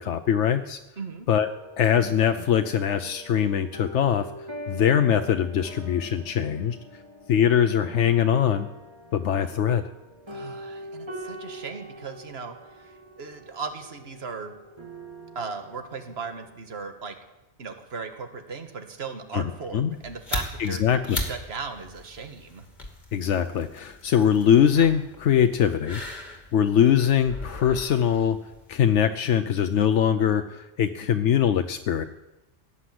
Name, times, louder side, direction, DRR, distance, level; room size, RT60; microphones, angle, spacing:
voice 1, 0.0-0.8 1.3-1.5 1.8-4.3 4.7-6.8 7.3-8.7 9.1-9.8 19.3-20.0 20.6-21.2 23.1-28.4 28.7-32.1, left 9 dB, 85° left, 9 dB, 1.0 m, -22 dB
voice 2, 1.0-1.3 10.3-14.5 15.4-17.2 17.6-22.7, right 5 dB, 65° right, 7 dB, 1.7 m, -37 dB
sound 1, 1.4-16.5, right 1 dB, 25° right, 2.2 m, -43 dB
sound 2, 19.9-29.1, left 1 dB, 40° left, 2.5 m, -38 dB
17.5 x 9.7 x 7.8 m, 0.98 s
omnidirectional pair, 1.2 m